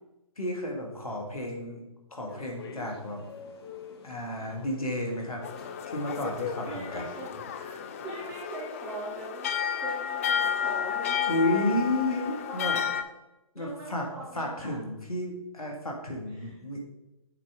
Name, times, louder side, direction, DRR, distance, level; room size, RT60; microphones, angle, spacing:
voice 1, 0.4-1.8 2.1-3.2 4.0-5.4 5.9-7.1 7.6-7.9 11.3-12.8 13.6-14.1 14.3-16.8, left 1 dB, 85° left, 1 dB, 1.9 m, -32 dB
sound 1, 2.3-8.4, left 5 dB, 45° left, 1.0 m, -49 dB
sound 2, 5.4-13.0, left 8 dB, 25° left, 0.3 m, -32 dB
voice 2, 6.7-7.6 8.0-9.5 9.8-11.8 12.1-12.9 13.5-14.8 16.4-16.5, right 2 dB, 20° right, -5 dB, 2.3 m, -41 dB
8.2 x 4.7 x 3.6 m, 0.95 s
figure-of-eight pair, 140°, 18 cm